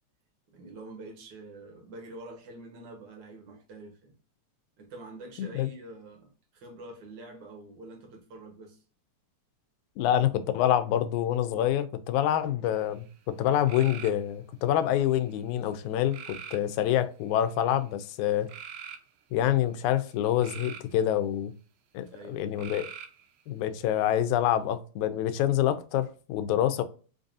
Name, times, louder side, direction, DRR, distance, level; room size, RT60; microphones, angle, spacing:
voice 1, 0.5-4.1 4.8-8.8 22.1-22.7, right 2 dB, 60° right, 1.2 m, -46 dB
voice 2, 5.4-5.7 10.0-18.5 19.3-21.5 21.9-22.9 23.5-26.8, left 11 dB, 85° left, 1.9 m, -26 dB
sound 1, 12.7-13.1 13.7-14.2 14.9-15.4 16.1-16.7 17.4-17.7 18.5-19.0 20.1-20.9 22.6-23.3, right 8 dB, 80° right, 2.0 m, -43 dB
5.2 x 2.6 x 2.5 m
omnidirectional pair, 3.4 m